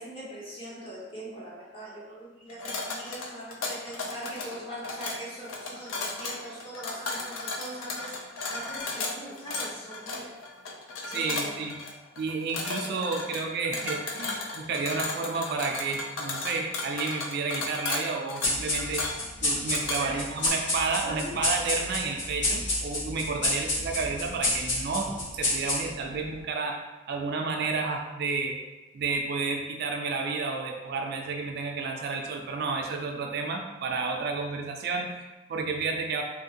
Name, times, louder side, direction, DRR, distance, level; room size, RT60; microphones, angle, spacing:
voice 1, 0.0-8.1 8.5-10.3 11.0-11.6 19.9-20.3 21.0-21.3, right 1 dB, 25° left, -6 dB, 0.7 m, -41 dB
sound 1, 2.5-20.5, left 3 dB, 80° left, 0.4 m, -35 dB
voice 2, 11.1-11.8 12.2-26.8 27.1-28.6 28.9-36.2, right 4 dB, 55° right, 2 dB, 0.3 m, -31 dB
sound 2, 18.4-26.2, left 1 dB, 60° left, 0.9 m, -29 dB
2.7 x 2.5 x 2.7 m, 1.1 s
head